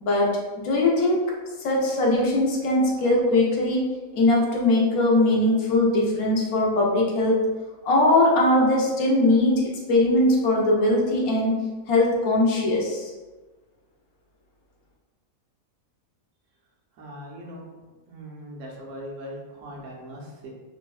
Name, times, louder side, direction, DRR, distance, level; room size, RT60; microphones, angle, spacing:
voice 1, 0.0-1.3 1.6-3.9 4.1-7.4 7.8-11.6 11.9-13.1, left 1 dB, 90° left, -2 dB, 1.1 m, -21 dB
voice 2, 17.0-17.6 18.1-20.5, equal, 65° right, -2 dB, 1.0 m, -40 dB
3.3 x 2.1 x 2.3 m, 1.2 s
omnidirectional pair, 1.5 m